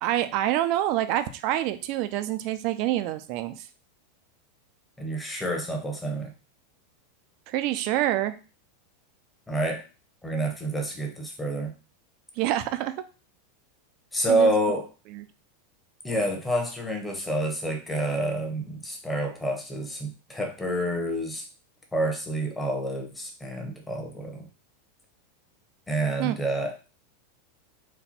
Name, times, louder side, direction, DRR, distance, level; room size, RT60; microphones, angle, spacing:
voice 1, 0.0-3.5 7.5-8.3 12.4-12.9 14.3-14.5 15.1-15.2 26.2-26.4, right 13 dB, 50° right, 10 dB, 0.4 m, -26 dB
voice 2, 5.0-6.3 9.5-9.8 10.2-11.7 14.1-14.9 16.0-21.4 21.9-24.5 25.9-26.8, right 1 dB, 5° left, 2 dB, 1.0 m, -28 dB
4.2 x 2.2 x 4.2 m, 0.34 s
supercardioid pair, 140°, 0 cm